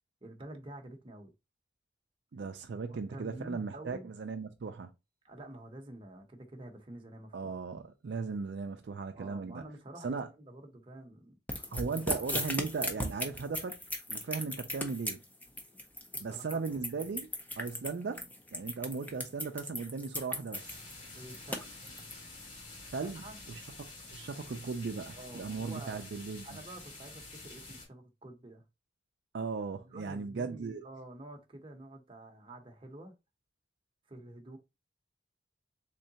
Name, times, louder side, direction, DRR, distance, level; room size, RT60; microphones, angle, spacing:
voice 1, 0.2-1.3 2.9-4.1 5.2-7.5 9.1-11.4 11.7-11.9 16.1-16.6 21.1-21.7 23.0-23.4 25.1-26.0 26.4-28.6 29.9-33.2 34.1-34.6, right 1 dB, 30° right, 0.8 m, -48 dB
voice 2, 2.3-4.9 7.3-9.6 10.0-10.3 11.6-13.8 14.1-15.2 16.2-17.3 17.6-20.8 22.9-23.6 24.1-26.5 29.3-30.8, right 4 dB, 60° right, 0.4 m, -37 dB
sound 1, 11.5-22.1, left 1 dB, 10° left, 0.5 m, -37 dB
sound 2, 20.5-27.8, left 2 dB, 45° left, 2.2 m, -49 dB
3.7 x 3.2 x 2.7 m
head